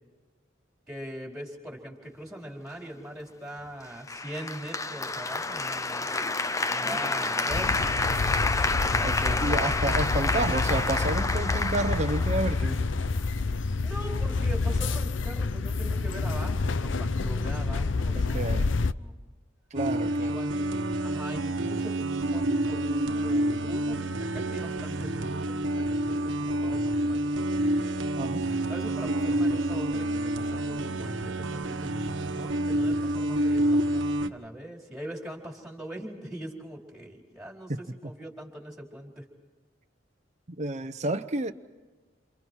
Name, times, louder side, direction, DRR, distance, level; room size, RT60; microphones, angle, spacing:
voice 1, 0.9-6.1 6.7-9.5 13.8-19.1 20.2-20.7 21.0-22.0 22.3-27.6 28.7-31.9 32.3-39.3, right 1 dB, 5° right, 4.5 m, -41 dB
Applause, 4.1-13.1, left 3 dB, 15° left, 0.7 m, -29 dB
sound 1, 7.5-18.9, left 3 dB, 70° left, 0.7 m, -28 dB
voice 2, 9.0-12.8 18.1-18.7 19.7-20.4 28.2-28.4 37.7-37.8 40.6-41.5, right 2 dB, 40° right, 0.9 m, -30 dB
sound 2, 19.8-34.3, right 1 dB, 70° right, 1.3 m, -28 dB
28.5 x 28.5 x 4.7 m
head